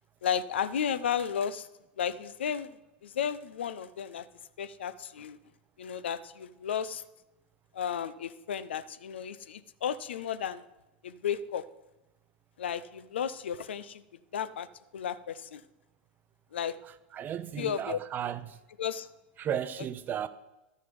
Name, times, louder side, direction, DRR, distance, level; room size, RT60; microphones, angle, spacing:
voice 1, 0.2-1.7 2.0-4.3 4.6-5.4 5.8-7.0 7.7-10.6 11.0-11.6 12.6-14.0 14.3-14.7 14.9-15.6 16.5-16.8 17.6-18.0 18.8-19.1, left 8 dB, 75° left, 0.5 m, -33 dB
voice 2, 17.1-18.6 19.4-20.3, right 9 dB, 30° right, 0.6 m, -34 dB
12.0 x 6.5 x 5.3 m
hypercardioid pair, 95°, 6 cm